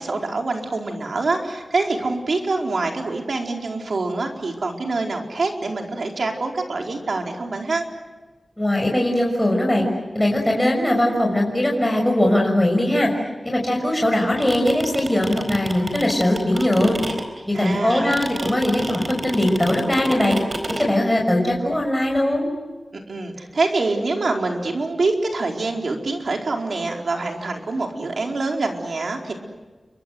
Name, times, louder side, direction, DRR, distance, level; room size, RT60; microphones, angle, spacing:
voice 1, 0.0-7.9 17.5-18.2 22.9-29.3, right 3 dB, 75° right, 2 dB, 4.5 m, -25 dB
voice 2, 8.6-9.9 10.1-13.1 13.4-17.0 17.5-20.4 20.8-22.5, left 1 dB, 10° left, 0 dB, 6.1 m, -20 dB
sound 1, 14.2-20.9, right 2 dB, 45° right, 4.3 m, -29 dB
29.5 x 24.5 x 7.9 m, 1.3 s
wide cardioid pair, 85°, 0 cm